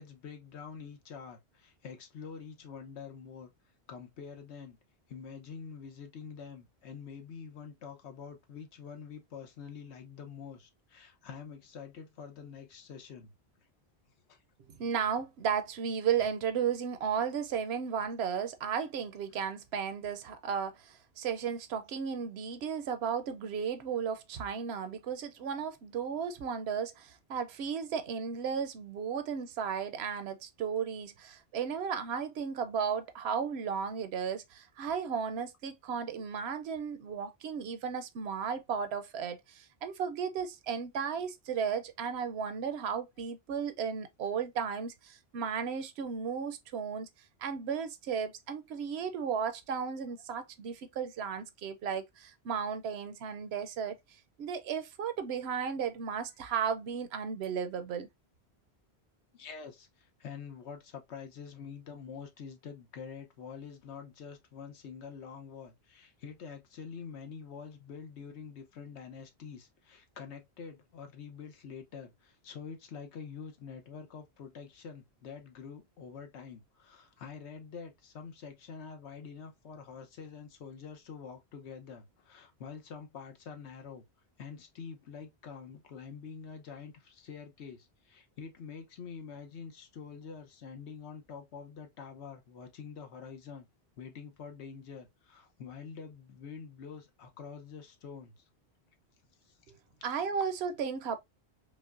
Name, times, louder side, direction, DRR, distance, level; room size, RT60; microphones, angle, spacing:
voice 1, 0.0-3.5 3.9-4.8 5.1-13.3 14.3-14.4 59.3-84.0 84.4-93.7 94.0-98.4 99.4-99.5 100.0-100.1, left 6 dB, 85° left, 1.1 m, -46 dB
voice 2, 14.8-47.1 47.4-54.0 54.4-58.1 99.7-99.8 100.0-101.2, right 7 dB, 75° right, 0.8 m, -34 dB
5.2 x 2.1 x 2.4 m
omnidirectional pair, 1.1 m